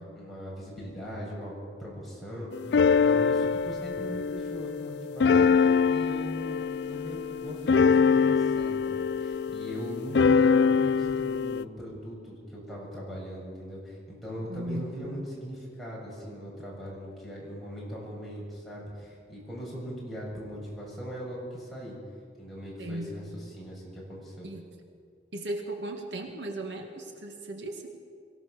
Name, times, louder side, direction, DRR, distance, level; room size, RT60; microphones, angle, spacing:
voice 1, 0.2-5.6 5.9-22.0 22.4-24.5, equal, ahead, -6 dB, 7.1 m, -40 dB
sound 1, 2.5-11.6, left 5 dB, 65° left, 0.4 m, -24 dB
voice 2, 14.5-14.9 22.8-23.2 24.4-24.7 25.3-27.9, right 1 dB, 90° right, 3 dB, 2.4 m, -36 dB
23.5 x 16.0 x 7.0 m, 2.2 s
head